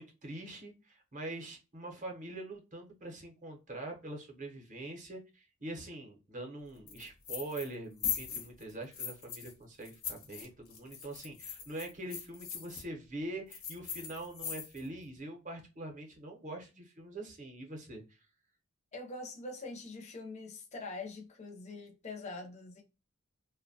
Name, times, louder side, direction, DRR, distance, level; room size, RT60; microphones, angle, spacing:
voice 1, 0.0-18.2, right 2 dB, 35° right, 0.7 m, -44 dB
sound 1, 6.9-7.7 8.0-9.5 9.8-12.8 13.5-14.9, left 8 dB, 70° left, 0.7 m, -40 dB
voice 2, 18.9-22.8, left 3 dB, 30° left, 0.5 m, -44 dB
2.6 x 2.1 x 2.6 m
head